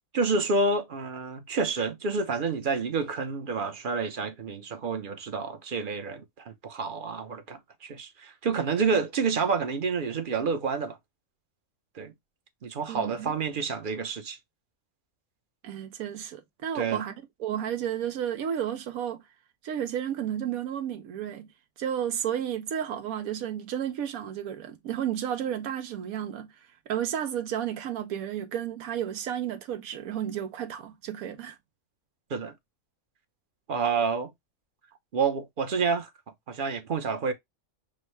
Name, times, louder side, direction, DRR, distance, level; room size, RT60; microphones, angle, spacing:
voice 1, 0.1-11.0 11.9-12.1 12.6-14.4 16.7-17.0 32.3-32.5 33.7-34.3 35.1-36.1 36.5-37.3, right 4 dB, 45° right, 0.8 m, -29 dB
voice 2, 12.9-13.3 15.6-17.1 17.4-19.2 19.6-21.5 21.8-31.6, right 9 dB, 85° right, 1.1 m, -32 dB
6.2 x 2.1 x 3.1 m
omnidirectional pair, 1.4 m